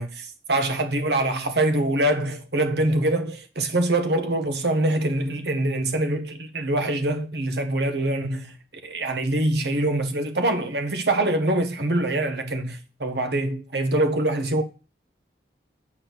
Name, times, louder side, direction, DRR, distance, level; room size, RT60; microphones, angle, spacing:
voice 1, 0.0-8.6 8.8-14.6, right 1 dB, 65° right, 1.3 m, -24 dB
8.6 x 4.4 x 6.7 m
head